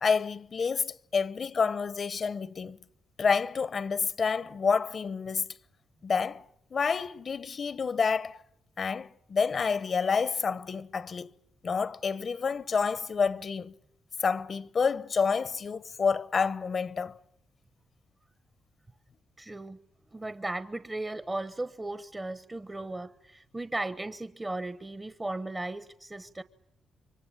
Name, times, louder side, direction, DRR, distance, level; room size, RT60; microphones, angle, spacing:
voice 1, 0.0-2.8 3.2-5.5 6.0-6.4 6.7-8.4 8.8-11.3 11.6-13.7 14.2-17.2, left 5 dB, 55° left, 1.0 m, -28 dB
voice 2, 19.4-19.8 20.1-26.4, right 2 dB, 20° right, 1.1 m, -36 dB
28.0 x 24.0 x 8.7 m
supercardioid pair, 55°, 0 cm